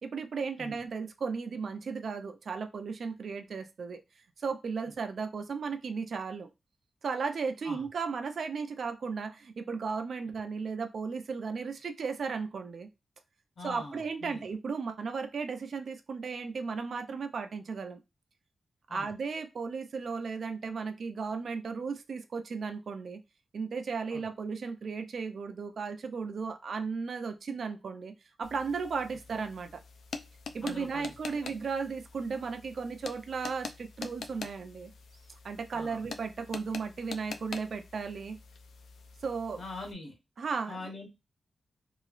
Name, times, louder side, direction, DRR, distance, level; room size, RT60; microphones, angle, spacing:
voice 1, 0.0-4.0 4.4-6.5 7.0-12.9 13.6-18.0 18.9-23.2 23.5-29.8 30.5-34.9 35.4-38.4 39.2-39.6 40.4-40.9, right 5 dB, 55° right, 7 dB, 0.4 m, -35 dB
voice 2, 13.6-14.4 18.9-19.1 24.1-24.2 30.6-31.1 31.4-31.5 35.7-36.0 39.6-40.1 40.7-41.1, left 2 dB, 45° left, 1 dB, 1.0 m, -43 dB
sound 1, 28.4-39.9, left 5 dB, 80° left, 0.3 m, -46 dB
2.9 x 2.3 x 2.4 m, 0.24 s
wide cardioid pair, 165°, 0 cm